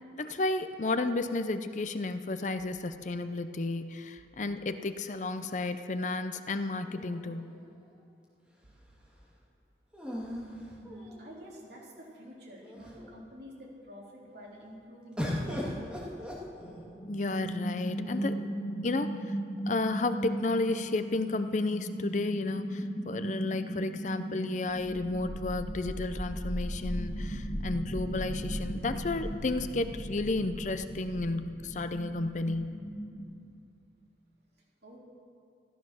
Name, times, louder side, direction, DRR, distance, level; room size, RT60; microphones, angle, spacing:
voice 1, 0.1-7.6 17.1-18.4 18.8-19.4 19.7-32.9, left 2 dB, 45° left, 10 dB, 0.6 m, -32 dB
sound 1, 6.8-8.0 9.9-11.5 12.2-12.3 12.6-13.2 15.2-17.0 18.0-18.7, left 1 dB, 5° right, 2.2 m, -39 dB
voice 2, 10.8-15.8 34.8-35.0, equal, 70° right, -4 dB, 3.5 m, -49 dB
sound 2, 16.6-33.2, equal, 70° left, 2.6 m, -37 dB
13.5 x 13.5 x 6.2 m, 2.5 s
head